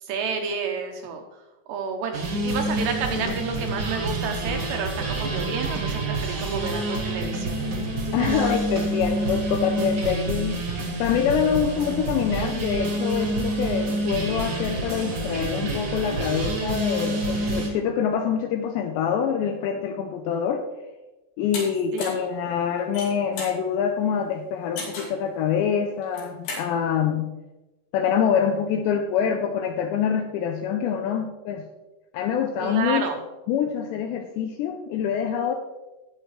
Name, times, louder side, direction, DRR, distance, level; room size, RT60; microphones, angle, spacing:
voice 1, 0.0-1.2 1.7-7.7 8.1-8.5 21.9-22.3 32.6-33.2, right 5 dB, 75° right, 3 dB, 2.7 m, -30 dB
sound 1, 2.1-17.7, right 2 dB, 50° right, 1.5 m, -28 dB
voice 2, 8.1-10.6 11.0-20.7 21.4-27.4 27.9-31.7 32.1-33.1 33.5-35.5, left 7 dB, 85° left, 5 dB, 2.6 m, -25 dB
sound 2, 21.5-21.7 22.0-22.3 22.8-23.6 24.8-25.2 26.0-26.7, left 3 dB, 60° left, 4.4 m, -34 dB
18.5 x 6.8 x 3.2 m, 1.1 s
omnidirectional pair, 5.7 m